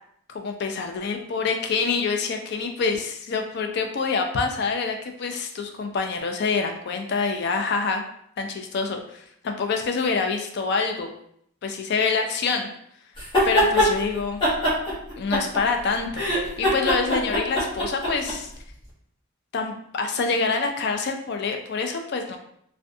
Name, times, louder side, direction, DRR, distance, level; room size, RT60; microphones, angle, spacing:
voice 1, 0.3-8.0 8.4-11.1 11.6-12.7 13.4-14.4 15.2-18.5 19.5-22.4, left 4 dB, 55° left, 4 dB, 0.3 m, -26 dB
sound 1, 13.2-13.9 14.4-15.8 16.1-18.3, equal, 25° left, 0.9 m, -22 dB
2.5 x 2.2 x 2.5 m, 0.69 s
head